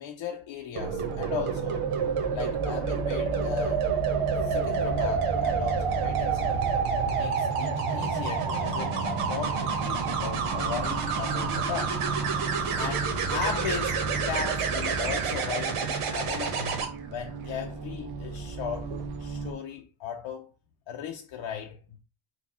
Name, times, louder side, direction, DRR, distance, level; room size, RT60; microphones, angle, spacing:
voice 1, 0.0-1.9 2.3-3.9 4.4-6.6 7.1-12.1 12.4-16.8 17.1-18.9 19.2-20.5 20.9-22.0, left 7 dB, 70° left, 0.6 m, -37 dB
sound 1, 0.8-16.9 18.8-19.0, right 6 dB, 90° right, 1.1 m, -28 dB
sound 2, 0.9-19.5, right 3 dB, 50° right, 0.8 m, -37 dB
4.2 x 2.3 x 4.2 m
cardioid pair, 145°, 49 cm